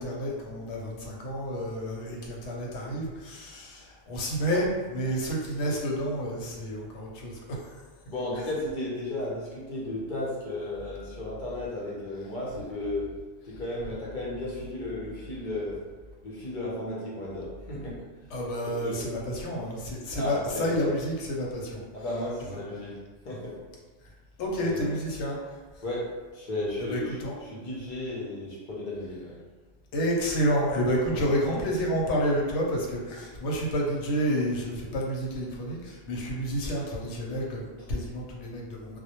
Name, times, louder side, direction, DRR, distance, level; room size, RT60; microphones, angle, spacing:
voice 1, 0.0-7.8 8.4-8.5 18.3-21.8 22.5-22.6 24.4-25.8 26.8-27.4 29.9-39.0, equal, 75° left, -2 dB, 0.9 m, -30 dB
voice 2, 8.1-13.1 13.4-15.8 16.2-18.0 18.6-19.0 20.1-20.9 21.9-22.9 23.2-23.6 24.6-24.9 25.8-29.4 31.1-31.2, left 1 dB, 50° left, -5 dB, 0.6 m, -34 dB
2.2 x 2.1 x 2.8 m, 1.3 s
omnidirectional pair, 1.3 m